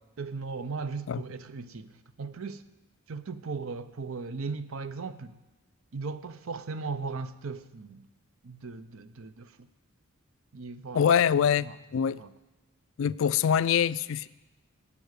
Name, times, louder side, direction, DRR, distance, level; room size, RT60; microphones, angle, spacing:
voice 1, 0.2-2.6 3.1-5.4 5.9-8.1 8.4-9.7 10.5-11.1 11.3-11.8 12.1-12.3, right 4 dB, 70° right, 0.6 m, -37 dB
voice 2, 10.9-12.2 13.0-14.3, left 8 dB, 60° left, 0.3 m, -24 dB
11.0 x 8.5 x 8.2 m
head